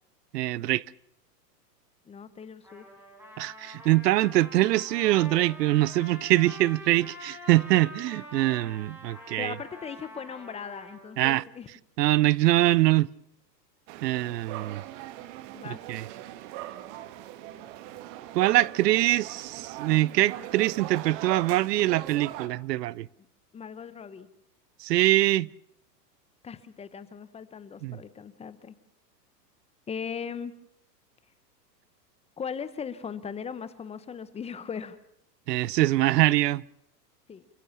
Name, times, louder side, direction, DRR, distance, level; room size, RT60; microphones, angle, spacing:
voice 1, 0.3-0.8 3.4-9.5 11.2-11.4 12.0-13.1 14.0-14.8 15.9-16.1 18.3-23.1 24.8-25.5 27.8-28.0 35.5-36.6, right 16 dB, 75° right, 0.8 m, -23 dB
voice 2, 2.0-2.9 9.4-11.7 15.5-15.8 23.5-24.3 26.4-28.8 29.9-30.5 32.4-35.0 37.3-37.5, left 6 dB, 15° left, 0.9 m, -38 dB
Trumpet, 2.6-11.1, left 1 dB, 5° right, 6.4 m, -45 dB
sound 1, 13.9-22.5, right 14 dB, 45° right, 1.6 m, -40 dB
28.0 x 16.0 x 7.2 m
supercardioid pair, 140°, 49 cm